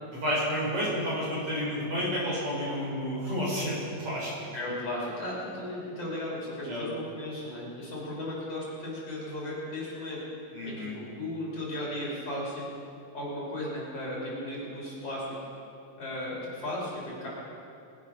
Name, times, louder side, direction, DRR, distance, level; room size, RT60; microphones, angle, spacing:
voice 1, 0.2-4.3 6.6-6.9 10.5-10.9, equal, 45° right, -6 dB, 5.2 m, -30 dB
voice 2, 4.5-10.2 10.6-12.6 13.1-15.2 16.0-17.3, left 1 dB, 50° left, -5 dB, 4.7 m, -36 dB
22.5 x 7.8 x 5.7 m, 2.6 s
omnidirectional pair, 3.7 m